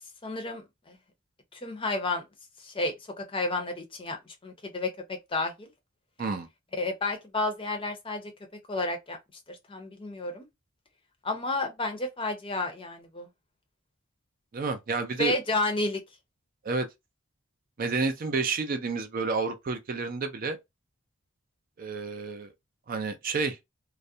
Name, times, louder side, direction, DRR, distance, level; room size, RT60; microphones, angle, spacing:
voice 1, 0.2-1.0 1.5-2.2 2.6-4.9 5.3-5.7 6.8-8.3 8.7-9.2 9.5-10.5 11.2-13.3 15.2-16.0, left 2 dB, 25° left, 0.6 m, -31 dB
voice 2, 14.5-15.3 16.6-16.9 17.8-20.6 21.8-22.5 22.9-23.6, right 4 dB, 45° right, 0.4 m, -30 dB
2.3 x 2.1 x 2.6 m
head